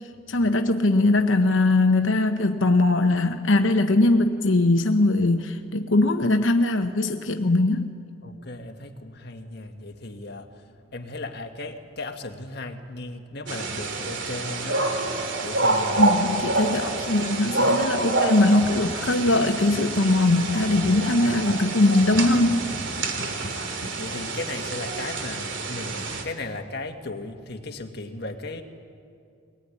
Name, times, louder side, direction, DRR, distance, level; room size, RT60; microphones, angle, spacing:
voice 1, 0.3-7.9 16.0-22.7, left 2 dB, 75° left, 7 dB, 1.0 m, -21 dB
voice 2, 8.2-15.1 15.4-16.2 23.2-28.6, left 2 dB, 55° left, 5 dB, 1.9 m, -36 dB
sound 1, 11.4-12.2 14.2-15.0 15.7-18.6 23.2-24.2, right 1 dB, 20° right, 7.7 m, -50 dB
sound 2, 13.5-26.2, right 2 dB, 70° right, 2.8 m, -27 dB
23.5 x 20.0 x 9.9 m, 2.4 s
head